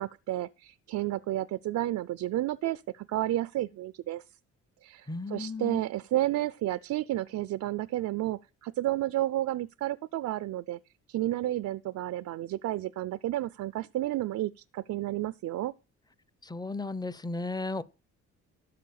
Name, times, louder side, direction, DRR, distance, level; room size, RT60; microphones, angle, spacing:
voice 1, 0.0-4.2 4.8-10.8 11.1-15.7, right 15 dB, 65° right, 0.5 m, -31 dB
voice 2, 5.1-5.8 16.4-17.8, left 3 dB, 15° left, 0.7 m, -34 dB
12.5 x 4.6 x 8.5 m
cardioid pair, 90°, 30 cm